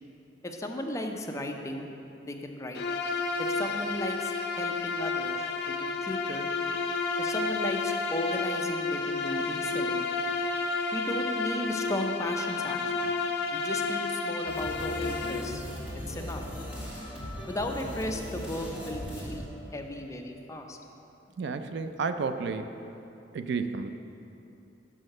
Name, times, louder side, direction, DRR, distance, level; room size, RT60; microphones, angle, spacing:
voice 1, 0.4-1.9 2.2-2.8 3.4-6.5 7.2-10.1 10.9-13.2 13.5-15.7 15.9-16.4 17.5-19.4 19.7-20.8, left 1 dB, 15° left, 3 dB, 0.5 m, -36 dB
Bowed string instrument, 2.7-15.5, left 4 dB, 60° left, 0.6 m, -31 dB
sound 1, 14.5-20.2, equal, 10° right, 1.6 m, -39 dB
voice 2, 21.4-22.7 23.3-23.9, right 5 dB, 70° right, 9 dB, 0.4 m, -31 dB
6.3 x 5.6 x 6.4 m, 2.9 s
head